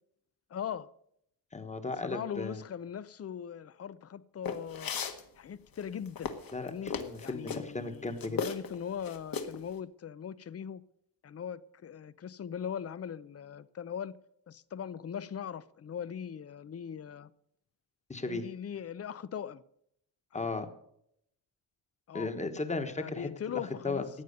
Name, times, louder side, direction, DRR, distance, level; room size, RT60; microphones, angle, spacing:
voice 1, 0.5-0.9 2.0-4.9 5.4-6.3 6.6-6.9 7.2-10.8 11.2-14.2 14.5-17.3 18.2-19.6 20.3-20.5 22.1-22.3 23.0-24.1, left 8 dB, 35° left, 0.6 m, -40 dB
voice 2, 1.5-2.6 6.5-8.4 18.1-18.4 20.3-20.7 22.1-24.1, left 3 dB, 15° left, 1.4 m, -36 dB
sound 1, 4.5-5.2 5.8-7.6 8.2-8.8 9.0-9.6, left 6 dB, 55° left, 1.6 m, -36 dB
15.0 x 9.2 x 6.6 m
wide cardioid pair, 155°, 41 cm